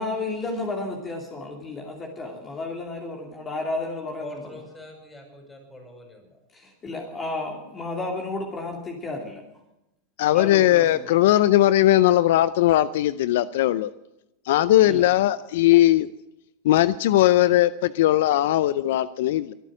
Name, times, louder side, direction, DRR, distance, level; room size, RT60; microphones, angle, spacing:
voice 1, 0.0-4.4 6.5-9.4 10.3-11.2 14.9-15.0, left 2 dB, 25° left, 1 dB, 2.7 m, -32 dB
voice 2, 4.2-6.4 11.6-11.7, left 2 dB, 10° left, 3 dB, 5.6 m, -44 dB
voice 3, 10.2-13.9 14.5-16.1 16.6-19.5, left 14 dB, 70° left, 17 dB, 0.5 m, -19 dB
23.0 x 9.2 x 6.3 m, 0.90 s
hypercardioid pair, 115°, 0 cm